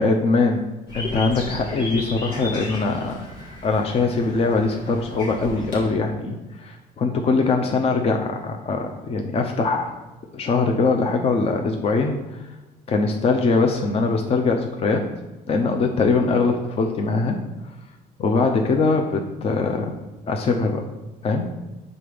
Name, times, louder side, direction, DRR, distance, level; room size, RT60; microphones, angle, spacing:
voice 1, 0.0-0.6 0.9-3.3 3.6-9.9 10.3-12.4 12.9-15.0 15.5-17.4 18.2-19.9 20.3-20.9 21.2-21.6, left 3 dB, 35° left, 3 dB, 0.6 m, -22 dB
sound 1, 0.9-5.9, left 1 dB, 90° left, 2.0 m, -34 dB
5.3 x 4.0 x 5.0 m, 1.1 s
cardioid pair, 110°, 17 cm